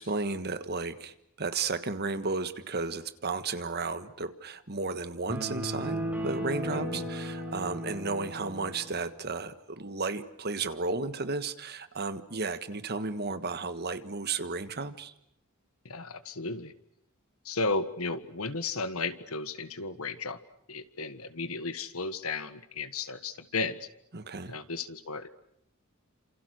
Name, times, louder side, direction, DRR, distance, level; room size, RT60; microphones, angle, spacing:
voice 1, 0.0-15.1 24.1-24.6, right 3 dB, 50° right, 11 dB, 1.5 m, -33 dB
sound 1, 5.3-8.9, equal, 5° right, 7.5 m, -35 dB
voice 2, 15.8-16.7 17.4-20.4 20.7-23.9 24.5-25.3, left 3 dB, 80° left, 12 dB, 1.6 m, -34 dB
30.0 x 27.5 x 6.4 m, 0.73 s
head